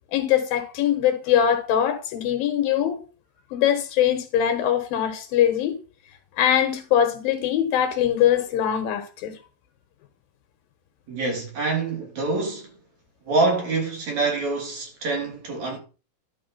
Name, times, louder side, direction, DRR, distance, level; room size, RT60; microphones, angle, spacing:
voice 1, 0.1-3.0 3.5-5.8 6.4-9.4, left 10 dB, 80° left, 2.8 m, -22 dB
voice 2, 11.1-12.8 13.3-15.8, right 3 dB, 50° right, 4.1 m, -26 dB
12.0 x 4.8 x 5.5 m
omnidirectional pair, 4.2 m